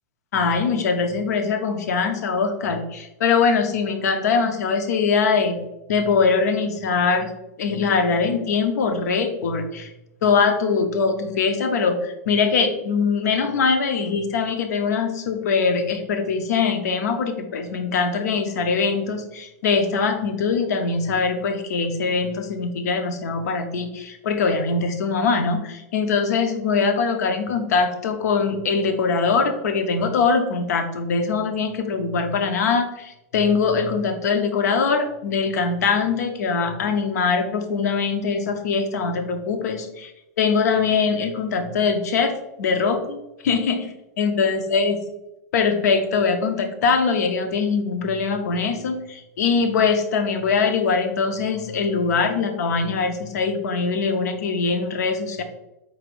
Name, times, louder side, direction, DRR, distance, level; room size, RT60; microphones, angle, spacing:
voice 1, 0.3-5.6 5.9-7.3 7.6-9.9 10.2-40.1 40.4-45.0 45.5-55.4, left 5 dB, 65° left, 7 dB, 0.6 m, -22 dB
4.8 x 3.2 x 2.5 m, 0.91 s
supercardioid pair, 175°, 10 cm